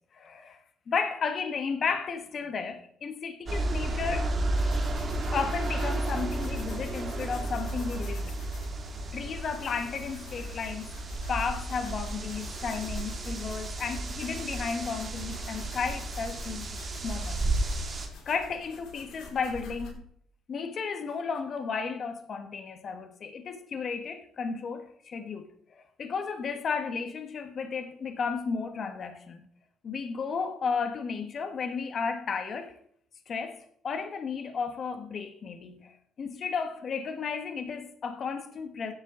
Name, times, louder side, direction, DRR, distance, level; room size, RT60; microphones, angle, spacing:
voice 1, 0.1-0.6 0.9-4.3 5.2-8.4 9.1-10.9 11.3-16.8 17.0-17.9 18.2-20.0 20.5-29.5 29.8-32.8 33.3-33.6 33.8-38.9, left 5 dB, 35° left, 1.4 m, -33 dB
sound 1, 3.5-18.1, right 2 dB, 30° right, 2.5 m, -33 dB
sound 2, 4.5-19.9, left 1 dB, 70° left, 5.1 m, -47 dB
16.0 x 11.0 x 3.9 m
cardioid pair, 145°, 0 cm